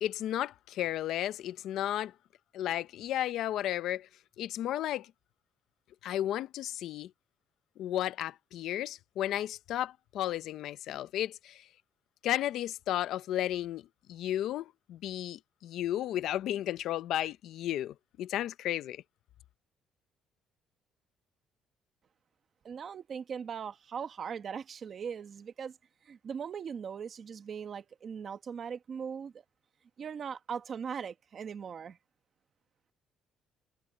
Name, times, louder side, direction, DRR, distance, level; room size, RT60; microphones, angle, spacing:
voice 1, 0.0-2.1 2.5-4.1 4.4-5.1 6.0-7.1 7.8-11.6 12.2-13.8 14.1-19.0, left 12 dB, 60° left, 0.6 m, -33 dB
voice 2, 22.6-25.8 26.0-29.4 30.0-32.0, right 7 dB, 35° right, 1.4 m, -39 dB
cardioid pair, 170°, 0 cm